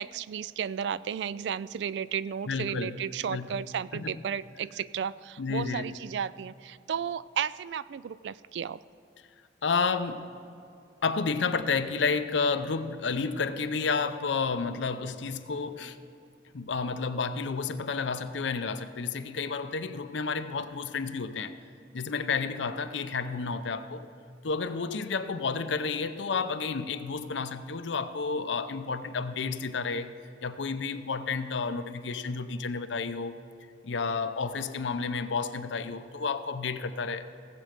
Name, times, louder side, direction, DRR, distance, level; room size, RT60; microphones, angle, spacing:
voice 1, 0.0-8.8, right 8 dB, 70° right, 18 dB, 0.3 m, -33 dB
voice 2, 2.5-3.0 3.3-3.6 3.9-4.2 5.4-5.9 9.6-10.3 11.0-16.0 16.5-21.6 21.9-24.0 24.4-30.1 30.4-33.4 33.8-37.3, left 4 dB, 85° left, 11 dB, 0.6 m, -31 dB
17.0 x 7.7 x 5.1 m, 2.5 s
head